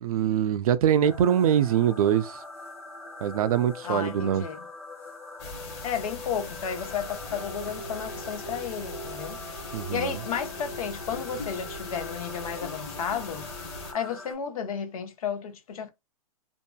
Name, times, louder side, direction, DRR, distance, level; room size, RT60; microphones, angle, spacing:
voice 1, 0.0-2.4 3.2-4.4 9.7-10.1, right 9 dB, 70° right, 0.4 m, -23 dB
sound 1, 1.0-14.3, left 1 dB, 15° left, 1.2 m, -42 dB
voice 2, 3.8-4.6 5.8-13.5 13.9-15.9, left 7 dB, 70° left, 0.8 m, -33 dB
sound 2, 5.4-13.9, left 3 dB, 45° left, 1.2 m, -40 dB
2.7 x 2.6 x 2.2 m
hypercardioid pair, 165°, 19 cm